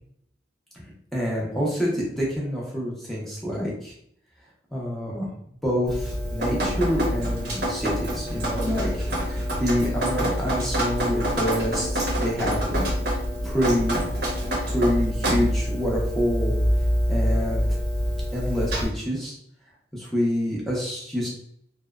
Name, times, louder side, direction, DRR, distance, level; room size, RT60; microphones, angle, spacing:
voice 1, 1.1-3.9 4.7-5.3 5.6-12.9 13.4-14.0 14.7-16.5 17.1-17.6 18.3-19.3 19.9-21.3, equal, ahead, -5 dB, 0.6 m, -27 dB
Drip, 5.9-18.9, equal, 55° right, 0.7 m, -26 dB
2.6 x 2.1 x 2.3 m, 0.68 s
head